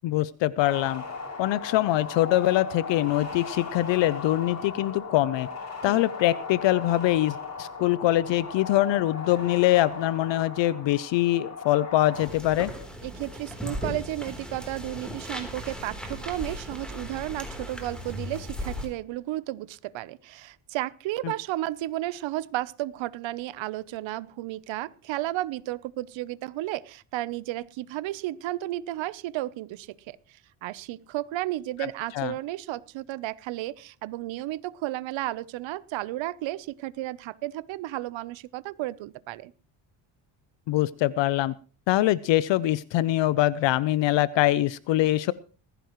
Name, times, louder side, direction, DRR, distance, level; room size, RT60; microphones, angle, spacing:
voice 1, 0.0-1.0 1.4-5.5 5.8-12.7 32.1-32.3 40.7-41.5 41.9-45.3, left 15 dB, 65° left, 0.6 m, -23 dB
sound 1, 0.6-12.3, left 5 dB, 35° left, 6.4 m, -37 dB
sound 2, 12.1-18.9, equal, ahead, 3.6 m, -37 dB
voice 2, 13.0-30.2 30.6-39.5, right 16 dB, 70° right, 0.9 m, -33 dB
19.5 x 15.0 x 3.1 m
cardioid pair, 135°, 47 cm